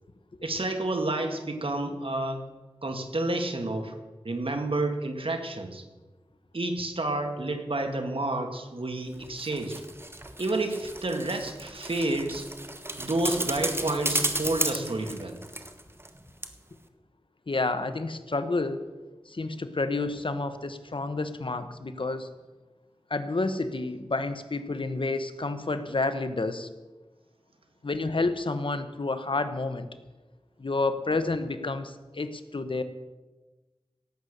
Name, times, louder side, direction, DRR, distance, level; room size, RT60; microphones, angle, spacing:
voice 1, 0.4-2.4 2.8-3.9 4.2-5.8 6.5-9.8 10.4-12.5 13.0-15.4, right 2 dB, 65° right, 4 dB, 2.1 m, -30 dB
sound 1, 9.2-16.2 16.4-16.5, right 1 dB, 25° right, 1.2 m, -33 dB
voice 2, 17.5-18.8 19.3-22.3 23.1-26.7 27.8-29.9 30.6-32.8, left 3 dB, 60° left, 10 dB, 1.1 m, -29 dB
17.0 x 8.2 x 6.7 m, 1.2 s
wide cardioid pair, 45°, 10 cm